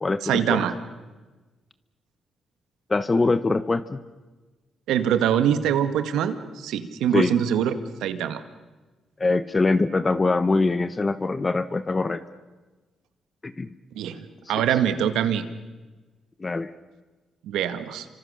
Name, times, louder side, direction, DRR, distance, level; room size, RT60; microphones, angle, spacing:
voice 1, 0.2-0.7 4.9-7.7 8.0-8.4 14.0-15.5 17.4-18.1, right 9 dB, 90° right, 10 dB, 1.8 m, -24 dB
voice 2, 2.9-4.0 7.1-7.3 9.2-12.2 13.4-13.7 14.5-14.6 16.4-16.7, left 3 dB, 30° left, 13 dB, 1.1 m, -23 dB
28.5 x 25.5 x 6.6 m, 1.2 s
cardioid pair, 80°, 0 cm